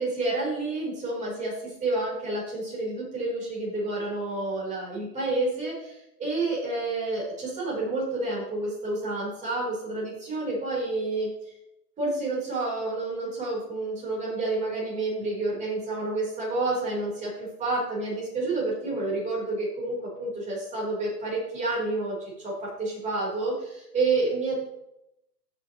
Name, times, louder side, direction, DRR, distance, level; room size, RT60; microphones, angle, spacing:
voice 1, 0.0-11.3 12.0-24.7, right 2 dB, 15° right, -4 dB, 3.9 m, -29 dB
15.5 x 6.0 x 3.0 m, 0.83 s
hypercardioid pair, 135°, 48 cm